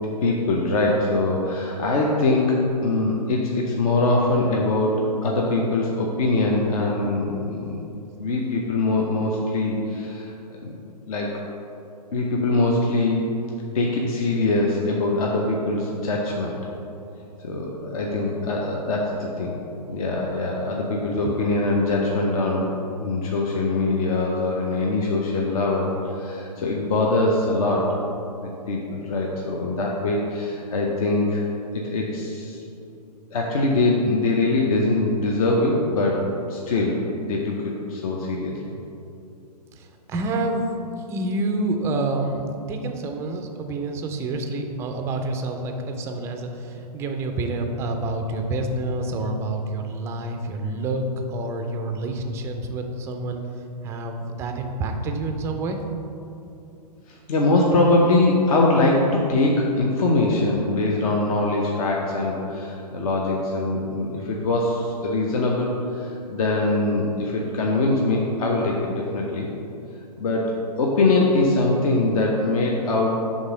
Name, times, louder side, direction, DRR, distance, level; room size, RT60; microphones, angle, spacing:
voice 1, 0.2-7.8 8.2-10.7 11.0-11.4 12.1-13.4 13.7-16.6 17.4-19.6 19.9-22.7 23.0-27.9 28.4-31.4 31.7-32.6 33.3-36.2 36.5-38.7 57.1-69.5 70.2-70.5 70.8-73.1, left 2 dB, 60° left, -2 dB, 0.8 m, -23 dB
voice 2, 39.7-40.7 41.1-53.4 53.8-55.8, right 2 dB, 15° right, 4 dB, 0.3 m, -28 dB
5.4 x 3.6 x 5.0 m, 2.7 s
hypercardioid pair, 130°, 21 cm